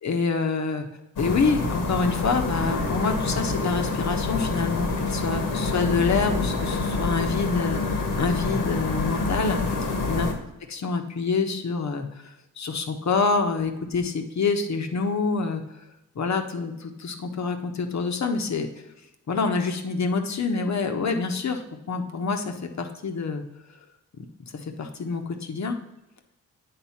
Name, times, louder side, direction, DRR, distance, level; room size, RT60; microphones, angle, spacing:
voice 1, 0.0-0.9 1.2-10.3 10.7-12.2 12.6-15.6 16.1-18.7 19.3-23.4 24.2-24.3 24.8-25.8, left 4 dB, 55° left, 5 dB, 1.2 m, -26 dB
sound 1, 1.2-10.3, left 3 dB, 70° left, 1.4 m, -27 dB
8.5 x 3.8 x 5.8 m, 0.93 s
supercardioid pair, 50°, 34 cm